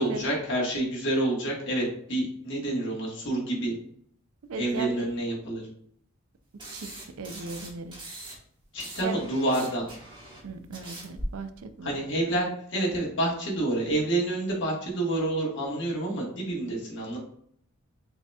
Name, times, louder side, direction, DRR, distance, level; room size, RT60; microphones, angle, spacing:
voice 1, 0.0-3.8 4.6-5.6 8.7-9.8 11.8-17.2, right 1 dB, 55° left, -4 dB, 1.5 m, -28 dB
voice 2, 4.5-5.1 6.7-8.0 9.0-9.3 10.4-12.0 12.3-12.4, right 3 dB, 75° right, 9 dB, 0.4 m, -37 dB
sound 1, 6.6-8.4 8.6-11.2, right 1 dB, 20° right, 1.1 m, -41 dB
6.4 x 2.8 x 2.3 m, 0.65 s
head